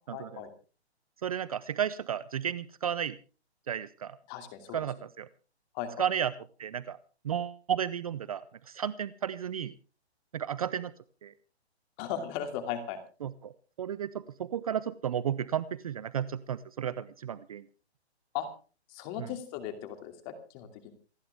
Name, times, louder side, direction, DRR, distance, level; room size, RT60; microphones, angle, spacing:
voice 1, 0.1-0.5 4.3-4.9 5.7-6.0 12.0-13.0 18.3-18.5 18.9-20.9, left 9 dB, 25° left, 7 dB, 2.7 m, -37 dB
voice 2, 1.2-3.2 3.7-4.2 4.7-5.3 6.0-6.3 6.6-7.0 7.2-9.7 10.3-10.9 11.2-11.3 13.2-13.5 13.8-17.7 19.2-19.3, right 9 dB, 35° right, 16 dB, 0.6 m, -33 dB
28.0 x 10.0 x 3.5 m, 0.36 s
hypercardioid pair, 160°, 33 cm